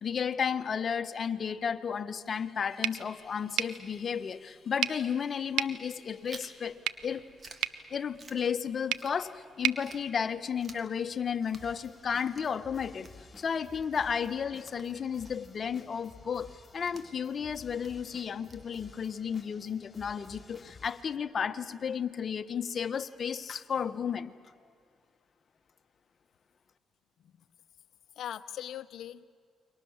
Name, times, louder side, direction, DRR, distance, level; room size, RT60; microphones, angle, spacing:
voice 1, 0.0-7.2 7.9-13.1 13.4-24.3, left 7 dB, 50° left, 11 dB, 1.2 m, -33 dB
sound 1, 2.8-10.9, right 11 dB, 85° right, 0.9 m, -37 dB
Chewing mastication, 6.2-9.5 9.8-19.2, right 3 dB, 40° right, 3.1 m, -54 dB
sound 2, 11.5-21.1, left 4 dB, 30° left, 3.2 m, -54 dB
voice 2, 28.2-29.2, left 11 dB, 75° left, 14 dB, 0.9 m, -41 dB
30.0 x 23.5 x 7.3 m, 2.2 s
supercardioid pair, 70°, 0 cm